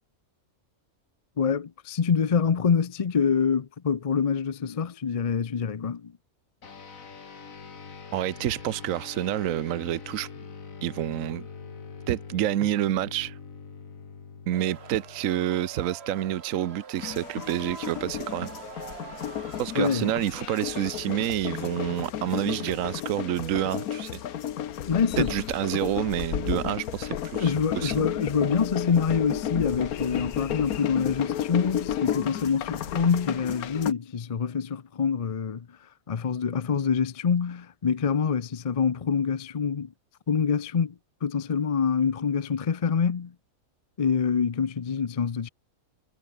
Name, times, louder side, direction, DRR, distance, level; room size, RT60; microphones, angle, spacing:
voice 1, 1.4-6.1 19.7-20.1 24.9-25.3 27.4-35.7 36.1-39.9 40.3-40.9 41.2-43.3 44.0-45.5, left 6 dB, 45° left, 0.5 m, -26 dB
sound 1, 6.6-16.4, left 5 dB, 70° left, 2.4 m, -44 dB
voice 2, 8.1-10.3 10.8-11.5 12.1-13.4 14.5-18.5 19.6-24.2 25.2-28.1, right 12 dB, 70° right, 1.1 m, -28 dB
sound 2, 14.5-20.2, right 5 dB, 45° right, 1.6 m, -44 dB
sound 3, 17.0-33.9, left 10 dB, 90° left, 1.4 m, -33 dB
omnidirectional pair, 1.5 m